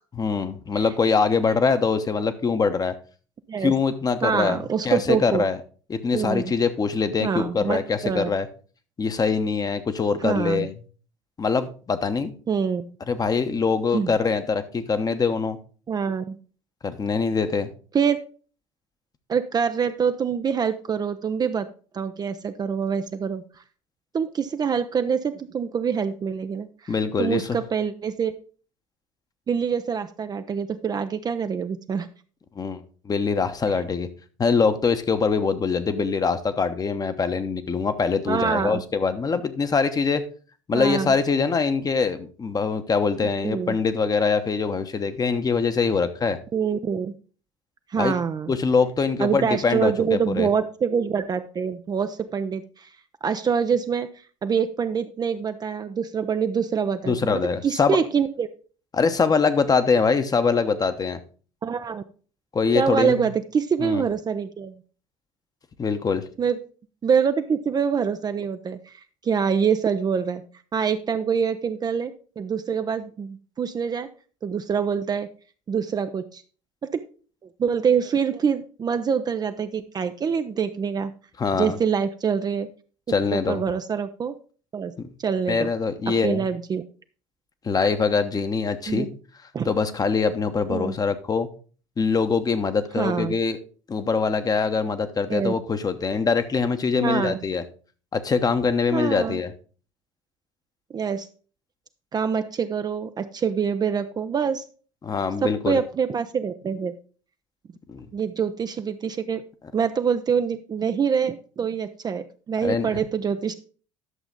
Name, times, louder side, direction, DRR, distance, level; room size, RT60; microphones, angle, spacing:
voice 1, 0.2-2.9 3.6-5.6 5.9-8.5 9.0-10.7 11.4-12.3 13.1-15.6 16.8-17.7 26.9-27.6 32.6-34.1 34.4-40.2 40.7-46.4 47.9-48.2 48.5-50.5 57.1-58.0 58.9-61.2 62.5-63.2 63.8-64.0 65.8-66.2 81.4-81.8 83.1-83.6 85.0-85.1 85.5-86.5 87.6-89.1 89.6-91.5 92.0-93.6 93.9-97.6 98.1-99.5 105.0-105.8 107.9-108.1 112.6-113.0, left 5 dB, 25° left, 10 dB, 1.0 m, -23 dB
voice 2, 4.2-5.5 6.1-6.5 7.2-8.3 10.2-10.7 12.5-12.8 13.9-14.1 15.9-16.4 17.9-18.2 19.3-21.7 21.9-23.4 24.1-26.9 27.2-28.3 29.5-32.1 38.3-38.8 40.7-41.1 43.4-43.8 46.5-47.1 47.9-48.5 49.2-52.9 53.2-54.1 54.4-58.5 61.6-62.0 62.7-64.8 66.4-66.6 67.0-68.9 69.2-70.4 70.7-74.1 74.4-75.3 75.7-76.4 76.8-77.0 77.6-81.1 81.5-82.7 83.3-84.4 84.7-84.9 85.2-85.7 86.1-86.8 88.9-89.1 89.5-89.7 90.7-91.0 93.0-93.3 95.3-95.5 97.0-97.4 98.9-99.4 100.9-101.3 102.1-104.6 105.4-106.9 108.1-109.4 109.7-113.5, right 6 dB, 25° right, 9 dB, 0.6 m, -25 dB
11.0 x 6.9 x 3.8 m, 0.39 s
figure-of-eight pair, 65°, 16 cm